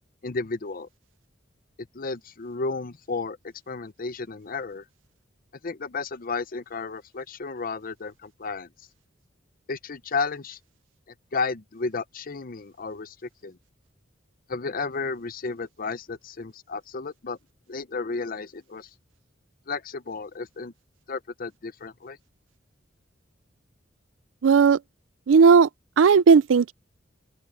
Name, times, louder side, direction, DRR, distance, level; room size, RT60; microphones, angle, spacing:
voice 1, 0.2-0.9 1.9-4.8 5.6-8.7 9.7-10.6 11.3-13.6 14.5-17.4 17.7-18.9 19.7-20.7 21.1-22.2, left 4 dB, 50° left, 0.7 m, -33 dB
voice 2, 24.4-24.8 25.3-25.7 26.0-26.7, right 5 dB, 80° right, 0.4 m, -15 dB
open air
head